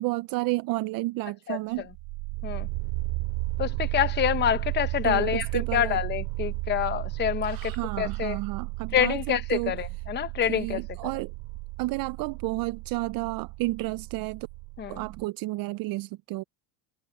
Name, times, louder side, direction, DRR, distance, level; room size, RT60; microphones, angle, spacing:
voice 1, 0.0-1.9 5.0-6.0 7.4-9.7 10.5-11.3 11.8-14.5 14.9-16.4, right 21 dB, 50° right, 0.6 m, -31 dB
voice 2, 1.5-1.9 2.4-2.7 3.6-8.4 8.9-10.8 14.8-15.0, left 10 dB, 25° left, 0.8 m, -27 dB
sound 1, 1.8-15.3, right 24 dB, 70° right, 2.7 m, -34 dB
supercardioid pair, 130°, 44 cm